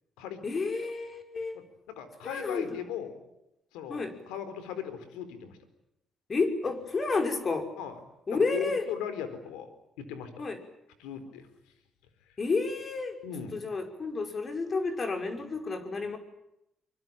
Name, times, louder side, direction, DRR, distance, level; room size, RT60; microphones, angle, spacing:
voice 1, 0.4-1.5 2.2-2.7 3.9-4.1 6.3-7.7 8.3-8.9 10.4-10.6 12.4-13.2 13.5-16.2, left 3 dB, 40° left, 6 dB, 5.7 m, -30 dB
voice 2, 1.5-3.2 3.7-5.6 7.8-8.0 8.3-9.7 10.0-10.3 11.0-11.5 13.2-13.6, left 9 dB, 90° left, 11 dB, 4.2 m, -38 dB
25.0 x 24.5 x 8.9 m, 0.84 s
supercardioid pair, 60°, 0 cm